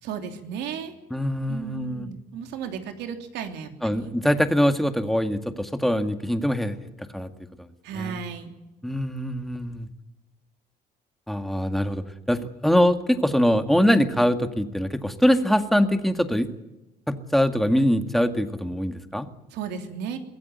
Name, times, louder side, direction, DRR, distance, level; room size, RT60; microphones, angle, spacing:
voice 1, 0.0-0.9 1.5-3.7 4.0-4.1 7.8-8.5 19.5-20.2, right 7 dB, 85° right, 5 dB, 3.1 m, -34 dB
voice 2, 1.1-2.1 3.8-6.8 7.1-7.3 7.6-7.7 7.9-8.2 8.8-9.9 11.3-12.0 12.3-16.5 17.1-19.3, equal, ahead, 7 dB, 2.0 m, -23 dB
23.0 x 16.0 x 9.4 m, 1.0 s
cardioid pair, 110°, 17 cm